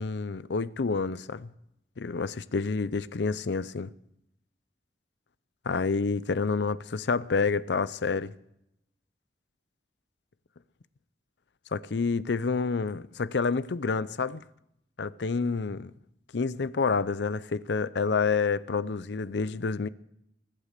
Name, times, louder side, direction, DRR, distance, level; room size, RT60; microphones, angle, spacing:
voice 1, 0.0-1.5 2.0-3.9 5.7-8.3 11.7-14.4 15.0-15.9 16.3-19.9, left 4 dB, 75° left, 0.6 m, -28 dB
22.5 x 8.4 x 6.6 m
head